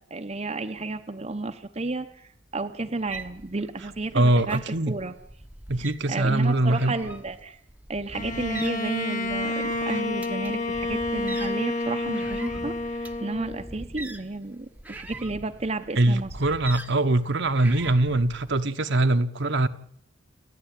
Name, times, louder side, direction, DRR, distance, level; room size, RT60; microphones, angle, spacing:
voice 1, 0.1-5.1 5.8-7.6 7.9-16.3, right 2 dB, 30° right, 0.9 m, -32 dB
sound 1, 3.0-18.6, right 1 dB, 10° right, 1.0 m, -43 dB
voice 2, 4.1-4.9 5.7-6.9 16.0-19.7, right 2 dB, 60° right, 1.1 m, -22 dB
Bowed string instrument, 8.1-13.9, left 2 dB, 40° left, 2.1 m, -29 dB
29.0 x 10.5 x 9.1 m
head